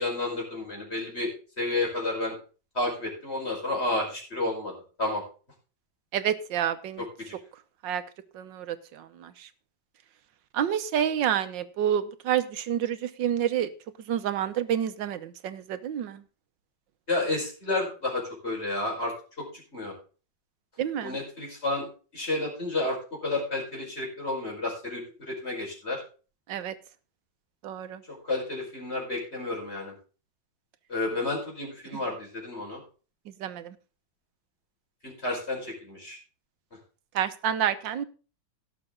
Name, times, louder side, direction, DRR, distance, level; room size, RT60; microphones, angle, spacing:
voice 1, 0.0-2.3 2.7-4.7 5.0-5.2 7.2-7.3 17.1-19.5 19.7-19.9 21.0-21.8 22.1-26.0 28.1-29.9 30.9-32.8 35.0-36.2, left 2 dB, 35° left, -1 dB, 5.4 m, -31 dB
voice 2, 6.1-7.0 7.8-8.0 8.3-9.3 10.5-13.7 14.1-16.2 20.8-21.1 26.5-26.7 27.6-28.0 33.4-33.7 37.1-38.0, right 9 dB, 80° right, 12 dB, 1.6 m, -28 dB
17.5 x 6.9 x 3.8 m, 0.36 s
omnidirectional pair, 2.0 m